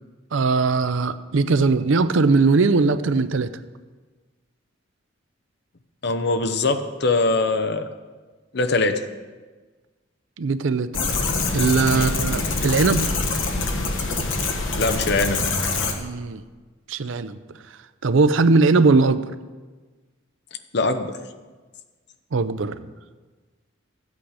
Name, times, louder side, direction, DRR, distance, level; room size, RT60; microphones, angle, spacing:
voice 1, 0.3-3.5 10.4-10.9 11.5-13.1 16.0-16.4 16.9-17.4 18.0-19.2 22.3-22.9, right 3 dB, 75° right, 13 dB, 0.5 m, -20 dB
voice 2, 6.0-7.9 8.5-9.1 11.9-12.1 14.8-15.4 20.7-21.2, left 3 dB, 55° left, 9 dB, 0.8 m, -22 dB
sound 1, 10.9-15.9, left 3 dB, 80° left, 1.3 m, -24 dB
14.0 x 8.3 x 4.9 m, 1.3 s
head